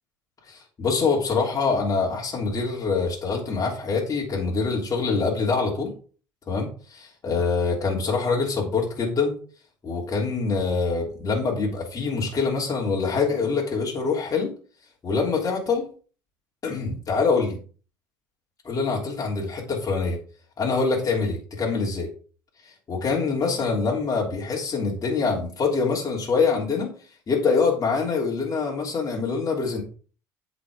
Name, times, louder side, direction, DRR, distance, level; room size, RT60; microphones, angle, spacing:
voice 1, 0.5-5.9 6.5-9.4 9.8-14.5 15.0-15.9 16.6-17.6 18.6-20.2 20.6-22.1 22.6-26.9 27.3-29.8, left 4 dB, 40° left, -2 dB, 3.3 m, -25 dB
8.8 x 5.2 x 4.9 m, 0.39 s
hypercardioid pair, 65°, 9 cm